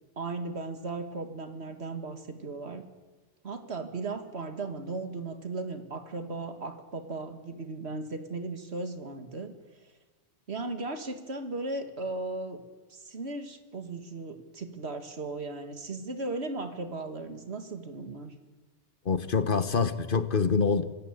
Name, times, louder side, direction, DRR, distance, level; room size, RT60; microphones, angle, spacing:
voice 1, 0.2-2.9 3.4-9.6 10.5-12.6 12.9-18.4, right 3 dB, 65° right, 2.1 m, -36 dB
voice 2, 19.0-20.8, left 5 dB, 50° left, 1.3 m, -25 dB
25.5 x 14.5 x 8.2 m
omnidirectional pair, 1.2 m